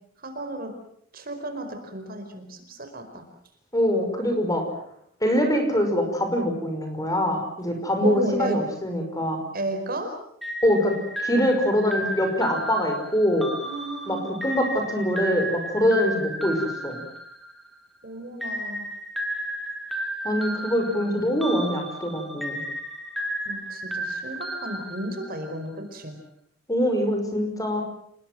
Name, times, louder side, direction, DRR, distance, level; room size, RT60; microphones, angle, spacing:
voice 1, 0.2-0.7 1.1-3.2 8.0-8.6 9.5-10.2 13.6-14.3 18.0-18.9 21.0-21.2 23.4-26.2, right 1 dB, 45° right, 6 dB, 4.8 m, -33 dB
voice 2, 3.7-4.6 5.2-9.4 10.6-10.9 11.2-13.5 14.1-14.2 14.4-17.0 20.2-22.6 26.7-27.8, equal, 15° left, 5 dB, 5.6 m, -24 dB
sound 1, 10.4-17.8 18.4-25.6, right 1 dB, ahead, 3.3 m, -33 dB
29.5 x 20.5 x 7.7 m, 0.70 s
head